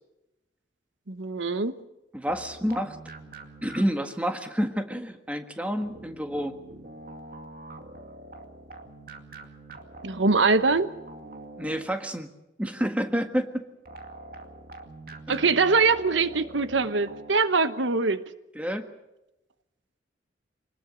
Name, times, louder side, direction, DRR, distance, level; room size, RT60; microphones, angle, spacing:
voice 1, 1.1-1.7 10.0-10.9 15.3-18.2, right 4 dB, 85° right, 12 dB, 1.1 m, -23 dB
voice 2, 2.1-3.0 3.6-6.6 11.6-12.3 12.6-13.6 15.3-15.4 18.5-18.9, equal, 5° right, 6 dB, 1.6 m, -29 dB
sound 1, 2.3-4.2 5.8-12.2 13.9-17.3, right 2 dB, 50° right, 2.3 m, -44 dB
26.0 x 20.0 x 6.3 m, 0.94 s
head